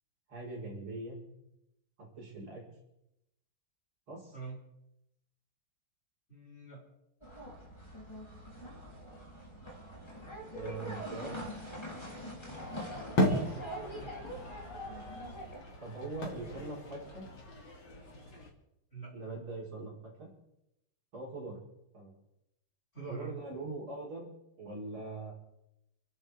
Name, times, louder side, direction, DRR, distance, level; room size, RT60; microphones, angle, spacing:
voice 1, 0.3-1.2 2.0-2.7 4.1-4.4 10.5-11.4 15.8-17.2 19.1-19.9 20.2-20.3 21.1-21.6 21.9-22.1 23.1-25.3, right 2 dB, 70° right, -4 dB, 5.4 m, -42 dB
voice 2, 6.3-6.8 13.3-14.1 18.9-19.2 22.9-23.4, right 4 dB, 30° left, -5 dB, 5.9 m, -45 dB
sound 1, 7.2-15.6, right 1 dB, 10° left, 3.1 m, -43 dB
sound 2, 12.6-18.5, left 1 dB, 60° left, 3.5 m, -36 dB
29.5 x 11.0 x 3.5 m, 0.86 s
omnidirectional pair, 2.4 m